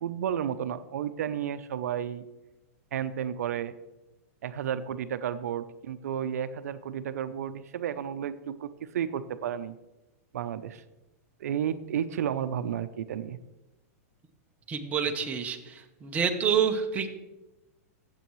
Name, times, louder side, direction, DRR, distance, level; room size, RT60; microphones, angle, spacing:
voice 1, 0.0-2.3 2.9-3.8 4.4-8.7 8.9-9.7 10.3-10.8 11.4-13.4, right 9 dB, 85° right, 12 dB, 0.6 m, -32 dB
voice 2, 14.7-17.1, right 7 dB, 15° right, 4 dB, 0.9 m, -28 dB
15.5 x 7.5 x 3.1 m, 1.0 s
supercardioid pair, 150°, 8 cm